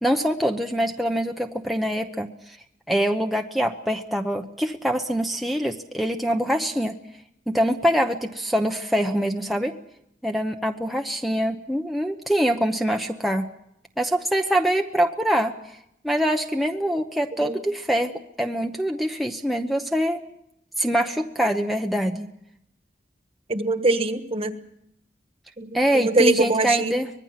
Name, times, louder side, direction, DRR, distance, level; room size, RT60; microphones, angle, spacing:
voice 1, 0.0-2.6 2.9-7.0 7.5-9.7 10.2-13.5 14.0-15.6 16.0-20.2 20.8-22.3 25.7-27.1, equal, ahead, 2 dB, 0.9 m, -24 dB
voice 2, 23.5-24.5 25.6-25.7 25.9-26.9, right 2 dB, 35° right, 9 dB, 1.4 m, -22 dB
24.5 x 20.5 x 5.9 m, 0.78 s
head